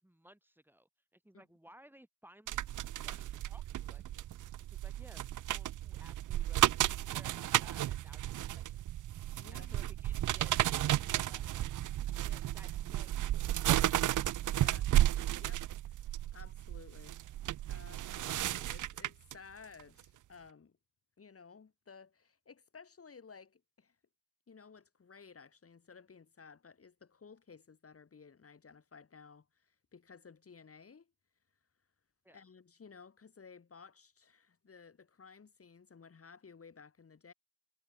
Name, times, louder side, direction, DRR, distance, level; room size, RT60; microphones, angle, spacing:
voice 1, 0.0-2.7 3.0-4.3 4.7-8.8 9.5-11.7 12.2-13.7 32.2-32.4, right 1 dB, 5° right, 3.5 m, -60 dB
sound 1, 2.5-19.3 19.8-20.0, right 13 dB, 70° right, 0.5 m, -33 dB
voice 2, 9.4-9.8 14.5-14.9 15.4-16.0 16.3-17.2 17.7-20.8 21.2-24.0 24.5-31.1 32.3-37.3, left 5 dB, 45° left, 2.8 m, -56 dB
cardioid pair, 95°, 32 cm